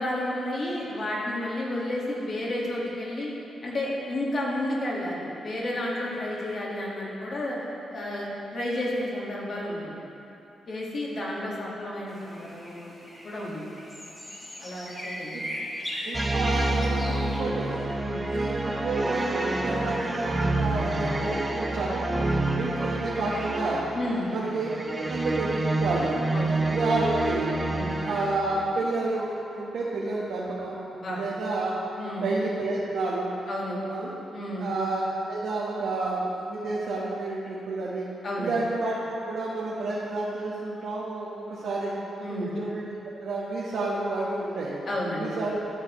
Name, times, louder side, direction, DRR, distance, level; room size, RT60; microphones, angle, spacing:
voice 1, 0.0-3.3 3.6-7.6 7.9-10.0 10.7-12.9 13.2-13.7 14.6-15.6 18.0-18.2 23.9-24.3 26.3-26.6 27.7-28.0 30.9-31.2 31.9-32.2 33.5-33.8 34.3-34.7 38.2-38.5 42.2-42.5 44.8-45.4, left 1 dB, 45° left, -4 dB, 1.7 m, -31 dB
sound 1, 12.1-17.4, equal, 20° left, 1.2 m, -38 dB
voice 2, 16.0-17.8 18.3-23.9 24.3-24.7 25.0-26.1 26.7-27.5 28.0-30.8 31.1-33.3 33.9-34.1 34.6-38.1 38.4-41.9 42.3-42.9 43.2-44.7 45.2-45.6, right 2 dB, 80° right, -6 dB, 1.1 m, -30 dB
sound 2, 16.1-28.7, right 2 dB, 15° right, 0.6 m, -28 dB
11.0 x 7.3 x 3.1 m, 2.8 s
wide cardioid pair, 140°, 0 cm